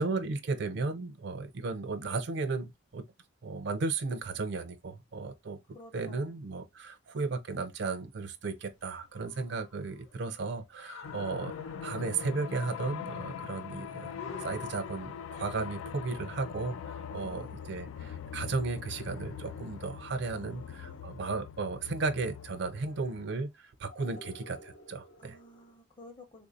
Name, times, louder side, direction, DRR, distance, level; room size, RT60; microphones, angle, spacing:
voice 1, 0.0-3.0 3.4-5.6 5.9-11.5 11.8-14.1 14.4-25.3, right 3 dB, 55° right, 0.4 m, -35 dB
voice 2, 5.7-6.3 17.0-17.6 20.3-21.1 25.2-26.5, left 2 dB, 25° left, 0.6 m, -53 dB
sound 1, 8.5-18.3 18.7-20.7 22.2-22.9 23.9-25.8, left 4 dB, 70° left, 0.7 m, -52 dB
sound 2, 11.0-23.2, left 8 dB, 90° left, 0.3 m, -42 dB
3.5 x 2.5 x 2.5 m
head